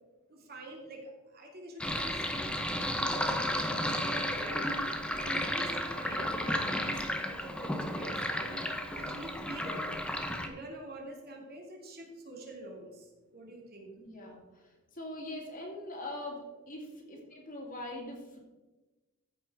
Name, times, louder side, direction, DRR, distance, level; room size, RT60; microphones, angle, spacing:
voice 1, 0.3-3.9 4.3-4.7 5.1-9.9 10.4-13.9, right 1 dB, 45° right, 0 dB, 2.5 m, -46 dB
Sink (filling or washing), 1.8-10.5, left 1 dB, 5° left, 0.9 m, -33 dB
voice 2, 14.0-14.6 14.9-18.4, left 1 dB, 40° left, 0 dB, 2.3 m, -42 dB
14.5 x 5.8 x 4.8 m, 1.1 s
head